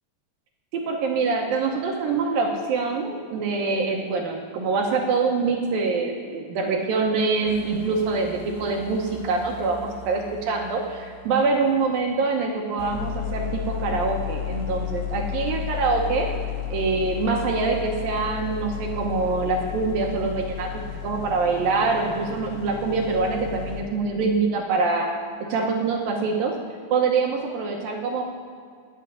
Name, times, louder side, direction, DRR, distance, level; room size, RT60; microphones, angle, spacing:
voice 1, 0.7-16.3 16.7-25.1 25.5-26.6 26.9-28.2, right 4 dB, 70° right, 2 dB, 2.5 m, -25 dB
sound 1, 7.4-12.4 12.8-23.8, left 10 dB, 65° left, 1.8 m, -34 dB
13.0 x 6.8 x 10.0 m, 2.1 s
omnidirectional pair, 4.8 m